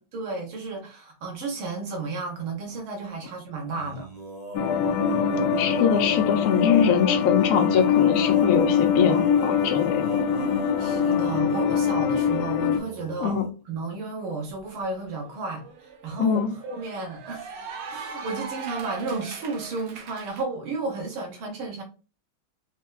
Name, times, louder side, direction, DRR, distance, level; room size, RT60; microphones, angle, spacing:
voice 1, 0.1-4.1 10.8-13.4 13.7-15.6 16.0-17.5 17.9-21.8, right 3 dB, 85° right, 1.9 m, -32 dB
Male singing, 3.7-13.5, right 2 dB, 45° right, 0.5 m, -41 dB
sound 1, 4.5-12.8, left 7 dB, 90° left, 1.4 m, -23 dB
voice 2, 5.6-10.4 13.2-13.5 16.2-16.5, left 7 dB, 65° left, 0.9 m, -23 dB
Cheering / Applause, 15.0-20.4, right 6 dB, 70° right, 0.8 m, -40 dB
4.4 x 2.2 x 2.3 m
omnidirectional pair, 2.2 m